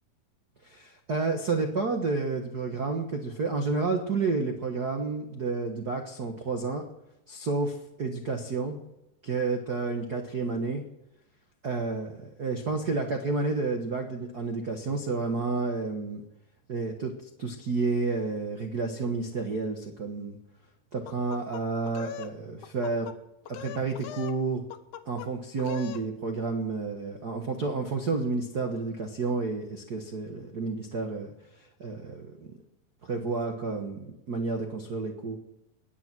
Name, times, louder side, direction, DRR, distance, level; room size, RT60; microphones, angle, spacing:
voice 1, 0.6-6.8 7.3-8.8 9.2-10.8 11.6-16.2 16.7-17.1 17.4-20.4 20.9-23.1 23.5-24.6 25.0-31.3 31.8-32.5 33.0-35.4, right 3 dB, 80° right, 4 dB, 0.8 m, -30 dB
sound 1, 21.1-22.3 22.6-23.2 23.5-24.4 24.7-25.3 25.6-26.0, left 11 dB, 70° left, 2.1 m, -41 dB
18.0 x 10.5 x 6.2 m, 0.85 s
omnidirectional pair, 4.1 m